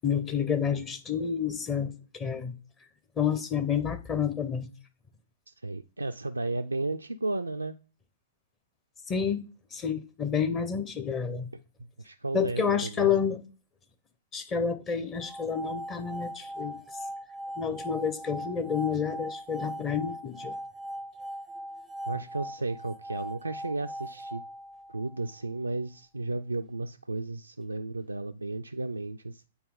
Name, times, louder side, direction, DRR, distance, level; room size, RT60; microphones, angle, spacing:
voice 1, 0.0-2.5 3.2-4.7 9.1-9.4 9.7-11.5 12.3-13.4 14.3-16.8 17.6-20.5, left 7 dB, 20° left, 0.9 m, -29 dB
voice 2, 5.5-7.7 12.0-13.3 22.1-24.4 24.9-29.5, right 2 dB, 85° right, 0.3 m, -34 dB
sound 1, 15.2-25.3, equal, 5° right, 0.6 m, -40 dB
8.6 x 4.2 x 3.8 m
figure-of-eight pair, 110°, 0 cm